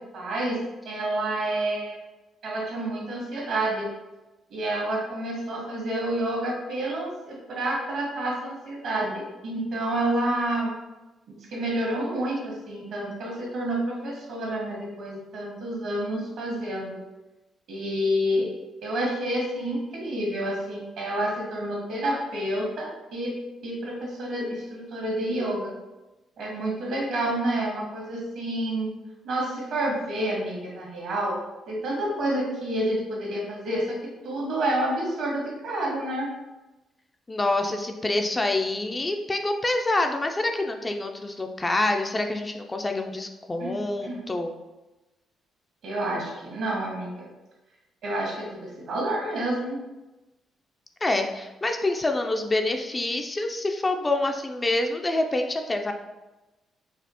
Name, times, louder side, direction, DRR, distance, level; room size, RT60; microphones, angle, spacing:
voice 1, 0.1-0.6 0.8-2.0 2.4-3.9 4.5-10.7 11.3-17.0 17.7-18.5 18.8-23.4 23.6-25.7 26.4-28.9 29.2-31.4 31.7-36.3 43.6-44.2 45.8-47.3 48.0-49.8, right 1 dB, 75° right, -3 dB, 1.4 m, -29 dB
voice 2, 37.3-44.5 51.0-55.9, left 2 dB, 20° left, 5 dB, 0.3 m, -26 dB
4.1 x 2.4 x 2.8 m, 1.0 s
cardioid pair, 90°, 0 cm